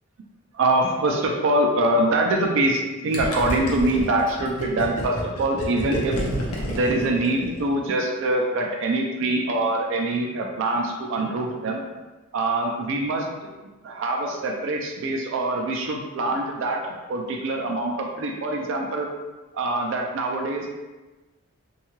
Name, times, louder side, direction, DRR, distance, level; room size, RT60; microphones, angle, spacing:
voice 1, 0.5-6.2 6.7-11.8 12.3-13.3 13.8-19.1 19.5-20.7, right 2 dB, 60° right, 1 dB, 0.3 m, -24 dB
Gurgling, 3.1-7.8, equal, 90° left, 0.6 m, -29 dB
2.7 x 2.3 x 2.9 m, 1.2 s
head